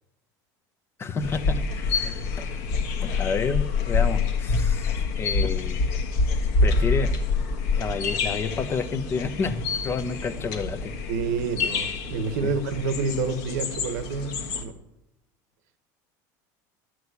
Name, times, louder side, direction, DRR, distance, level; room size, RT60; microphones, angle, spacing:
voice 1, 1.0-2.5 3.0-5.9 6.6-7.1 7.7-11.0 12.4-12.5, left 4 dB, 25° left, 11 dB, 0.9 m, -30 dB
sound 1, 1.2-14.6, left 4 dB, 75° left, 1.7 m, -26 dB
voice 2, 11.1-14.8, right 4 dB, 85° right, 11 dB, 1.2 m, -28 dB
11.5 x 6.4 x 8.3 m, 0.89 s
supercardioid pair, 130°, 9 cm